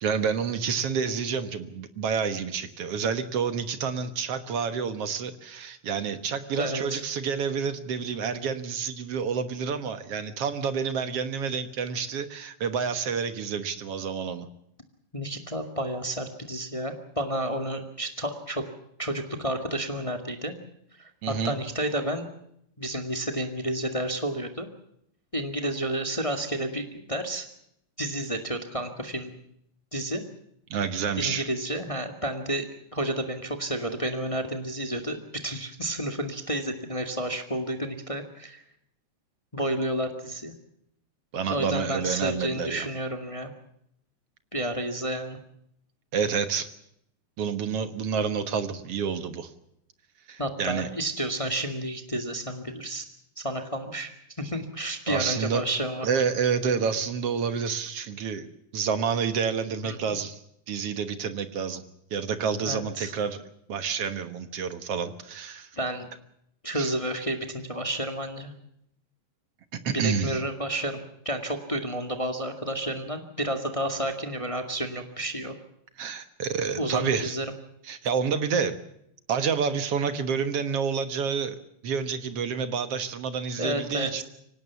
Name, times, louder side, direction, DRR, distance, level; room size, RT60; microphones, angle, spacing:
voice 1, 0.0-14.5 21.2-21.6 30.7-31.5 41.3-42.9 46.1-46.7 47.4-49.5 50.3-50.9 55.1-55.6 56.0-58.5 58.7-60.4 60.7-61.8 62.1-63.4 63.7-65.7 66.7-66.9 69.7-70.4 76.0-77.3 77.8-78.8 79.3-81.6 81.8-84.2, right 6 dB, 55° right, 10 dB, 1.8 m, -29 dB
voice 2, 6.6-7.0 15.1-18.7 19.0-20.5 21.0-22.3 22.8-24.7 25.3-27.5 28.0-29.3 29.9-30.2 31.2-32.6 32.9-38.6 39.5-40.5 41.5-43.5 44.5-45.4 50.4-53.0 53.4-54.1 54.4-56.1 59.8-60.0 62.6-63.1 65.7-66.1 66.6-68.5 69.9-71.0 71.2-75.5 76.8-77.4 83.6-84.2, right 1 dB, 20° left, 6 dB, 1.0 m, -31 dB
24.5 x 18.5 x 7.1 m, 0.74 s
omnidirectional pair, 4.1 m